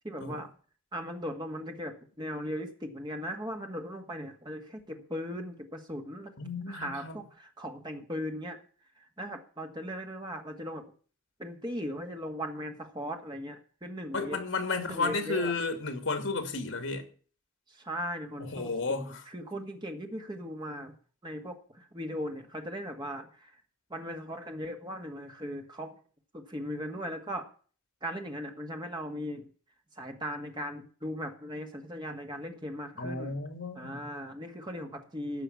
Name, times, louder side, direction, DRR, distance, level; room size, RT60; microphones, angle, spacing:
voice 1, 0.0-0.5 0.9-6.3 6.7-8.6 9.0-10.8 11.4-14.4 14.9-15.5 17.7-20.9 21.2-23.6 23.9-26.0 26.3-27.5 28.0-29.5 30.0-33.4 33.7-35.4, equal, 20° right, 1.9 m, -38 dB
voice 2, 6.4-7.2 14.1-17.1 18.4-19.2 33.0-34.1, left 3 dB, 70° left, 2.7 m, -33 dB
15.0 x 5.7 x 8.5 m
head